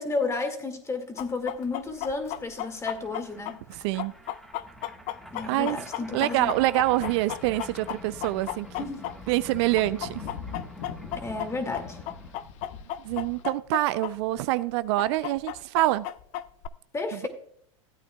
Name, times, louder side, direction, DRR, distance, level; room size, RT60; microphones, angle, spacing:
voice 1, 0.0-3.6 5.3-6.5 8.8-9.1 11.1-12.0 16.9-17.3, left 3 dB, 15° left, 2.0 m, -32 dB
Chicken rooster, 1.2-9.5 9.8-14.1 14.4-14.5 15.0-16.7, left 13 dB, 45° left, 0.5 m, -34 dB
sound 1, 1.3-1.4 1.6-12.5, equal, ahead, 1.5 m, -47 dB
voice 2, 3.7-4.1 5.5-5.8 6.1-8.7 9.3-10.3 13.0-16.0, right 17 dB, 55° right, 0.4 m, -26 dB
sound 2, 6.3-13.4, left 6 dB, 70° left, 1.3 m, -44 dB
16.0 x 9.0 x 2.3 m
hypercardioid pair, 110°, 17 cm